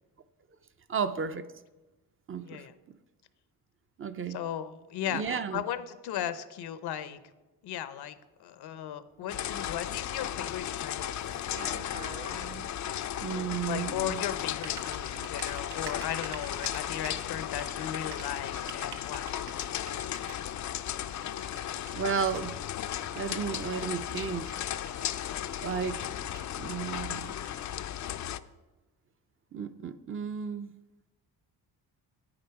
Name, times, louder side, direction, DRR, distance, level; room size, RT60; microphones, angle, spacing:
voice 1, 0.9-1.4 2.3-3.0 4.0-4.4 5.1-5.6 13.2-14.2 21.9-22.5 23.1-24.6 25.6-26.0 26.6-27.3 29.5-30.7, right 6 dB, 35° right, 0.5 m, -33 dB
voice 2, 4.3-7.2 7.6-11.5 13.7-19.3, left 10 dB, 80° left, 0.8 m, -36 dB
sound 1, 9.3-28.4, left 11 dB, 50° left, 0.5 m, -35 dB
Typing, 9.7-27.8, right 7 dB, 85° right, 1.2 m, -50 dB
9.5 x 8.8 x 4.7 m
cardioid pair, 110°, 39 cm